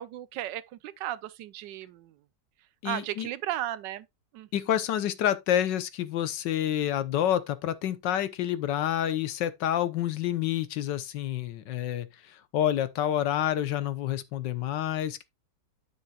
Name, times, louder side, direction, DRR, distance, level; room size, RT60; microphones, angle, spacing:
voice 1, 0.0-2.1 2.8-4.1 4.3-4.5, right 13 dB, 85° right, 1.3 m, -35 dB
voice 2, 2.8-3.3 4.5-15.2, left 11 dB, 85° left, 1.5 m, -28 dB
9.6 x 7.0 x 2.3 m
omnidirectional pair, 1.9 m